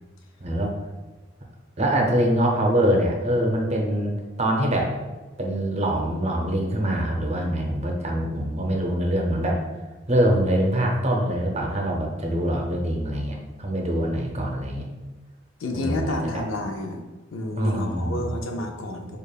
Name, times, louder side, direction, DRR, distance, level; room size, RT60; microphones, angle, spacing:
voice 1, 0.4-0.8 1.8-4.9 5.4-9.6 10.1-14.9 15.7-16.4 17.6-18.4, right 1 dB, 35° right, 0 dB, 0.6 m, -24 dB
voice 2, 15.6-17.0 17.3-19.2, left 2 dB, 80° left, 3 dB, 0.5 m, -30 dB
5.0 x 2.4 x 2.3 m, 1.2 s
head